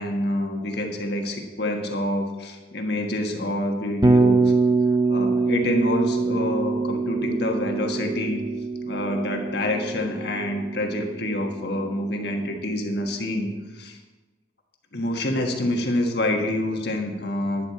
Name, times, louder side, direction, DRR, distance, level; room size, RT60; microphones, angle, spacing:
voice 1, 0.0-4.5 5.1-8.4 8.8-14.0 14.9-17.7, left 1 dB, 55° left, 2 dB, 1.5 m, -27 dB
Bass guitar, 4.0-12.1, right 3 dB, 20° right, 0.6 m, -24 dB
12.0 x 10.0 x 4.2 m, 1.2 s
head